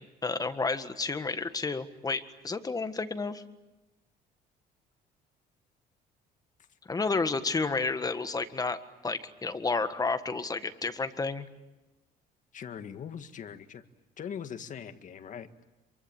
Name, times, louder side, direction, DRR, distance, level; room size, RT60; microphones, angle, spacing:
voice 1, 0.0-3.4 6.9-11.5, left 4 dB, 20° left, 10 dB, 1.7 m, -31 dB
voice 2, 12.5-13.8 14.2-15.5, left 8 dB, 50° left, 9 dB, 1.8 m, -41 dB
27.0 x 24.0 x 9.0 m, 1.0 s
cardioid pair, 110°, 17 cm